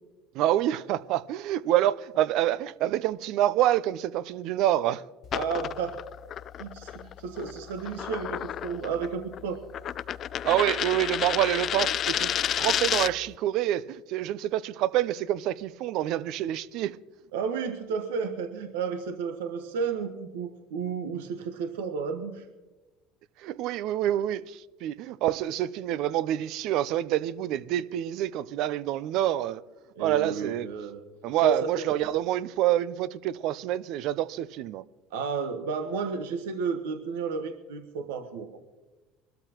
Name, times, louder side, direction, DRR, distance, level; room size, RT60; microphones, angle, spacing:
voice 1, 0.3-5.1 10.4-17.0 23.4-29.6 30.0-30.7 31.2-34.8, right 13 dB, 65° right, 0.5 m, -27 dB
sound 1, 5.2-13.3, left 10 dB, 45° left, 0.3 m, -31 dB
voice 2, 5.3-6.0 6.6-9.6 17.3-22.5 30.0-31.0 31.4-31.8 35.1-38.5, right 5 dB, 85° right, 1.2 m, -32 dB
24.0 x 13.0 x 3.0 m
hypercardioid pair, 85°, 0 cm